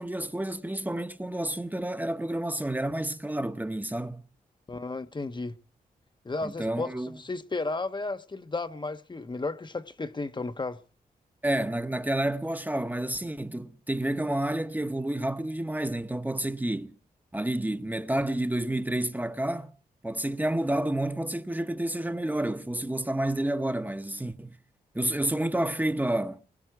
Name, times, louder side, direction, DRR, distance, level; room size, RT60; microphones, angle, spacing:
voice 1, 0.0-4.2 6.4-7.2 11.4-16.9 17.3-19.7 20.0-24.6 24.9-26.4, right 1 dB, 10° right, 1.0 m, -30 dB
voice 2, 4.7-5.6 6.2-10.8, left 3 dB, 30° left, 0.9 m, -33 dB
21.5 x 11.5 x 4.7 m
cardioid pair, 50°, 15 cm